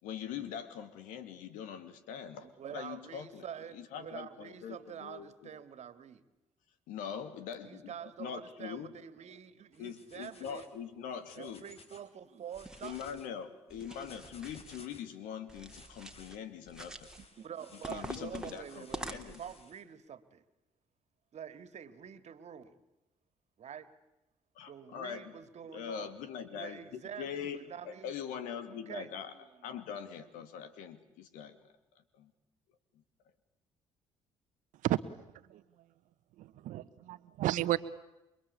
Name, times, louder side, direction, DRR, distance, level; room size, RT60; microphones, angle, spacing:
voice 1, 0.0-3.4 3.7-5.5 6.9-7.9 8.2-8.9 9.8-11.6 12.8-17.1 17.9-19.4 24.6-25.3 25.7-29.3 29.6-31.7 32.2-32.3, left 8 dB, 75° left, 11 dB, 2.7 m, -43 dB
voice 2, 2.4-6.2 7.6-10.7 11.4-13.2 13.7-14.0 17.2-20.4 21.3-22.8 23.6-23.9 24.7-28.1 28.6-29.8 30.1-30.2, right 8 dB, 55° right, 12 dB, 2.3 m, -47 dB
sound 1, 9.7-10.8 11.1-12.1 12.4-13.3 13.9-15.1 15.7-16.3 17.0-18.0 18.6-19.8, left 3 dB, 45° left, 4.7 m, -58 dB
sound 2, 12.5-13.2 13.7-14.8 15.5-16.4 16.7-17.3 17.8-19.6, right 1 dB, 5° right, 3.1 m, -46 dB
voice 3, 36.6-37.8, right 15 dB, 70° right, 14 dB, 1.3 m, -31 dB
28.5 x 23.5 x 8.5 m, 0.96 s
hypercardioid pair, 55°, 14 cm